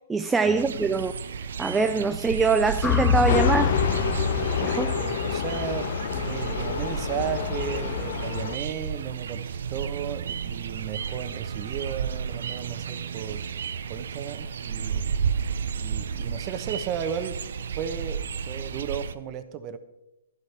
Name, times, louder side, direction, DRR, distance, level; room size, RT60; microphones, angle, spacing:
voice 1, 0.1-1.1 1.6-3.8 4.6-5.0, right 4 dB, 10° right, 0.4 m, -24 dB
sound 1, 0.6-19.1, right 6 dB, 70° right, 0.7 m, -32 dB
sound 2, 2.8-7.0, left 7 dB, 10° left, 1.1 m, -27 dB
sound 3, 3.3-8.6, left 8 dB, 55° left, 0.8 m, -29 dB
voice 2, 5.0-13.4 13.9-15.0 15.8-17.4 17.7-18.2 18.4-19.8, right 8 dB, 30° right, 1.0 m, -34 dB
12.5 x 11.5 x 4.4 m
hypercardioid pair, 140°, 0 cm